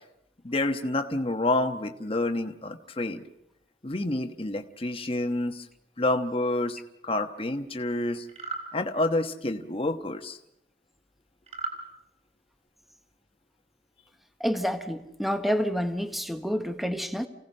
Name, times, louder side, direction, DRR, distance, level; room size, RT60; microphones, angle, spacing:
voice 1, 0.4-3.2 3.8-5.7 6.0-8.3 8.7-10.4, left 2 dB, 30° left, 1.2 m, -28 dB
sound 1, 8.3-8.7 11.5-11.8, right 4 dB, 40° right, 3.9 m, -35 dB
voice 2, 14.4-17.3, equal, ahead, 1.1 m, -28 dB
29.0 x 17.0 x 5.5 m
head